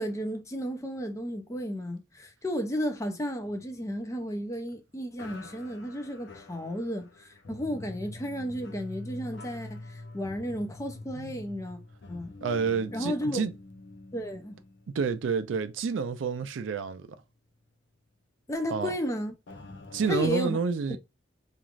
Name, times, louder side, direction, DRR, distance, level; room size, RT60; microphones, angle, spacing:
voice 1, 0.0-11.8 12.1-12.3 12.9-13.4 14.1-14.6 18.5-19.3 20.1-20.6 20.9-21.0, equal, 15° left, 0.5 m, -33 dB
sound 1, 3.4-4.7 5.2-15.6 15.9-16.1 16.7-16.8 19.5-20.3, left 2 dB, 60° left, 0.6 m, -46 dB
voice 2, 12.4-13.5 14.9-17.1 18.7-18.9 19.9-21.0, right 5 dB, 80° right, 0.4 m, -29 dB
3.1 x 2.5 x 2.4 m
head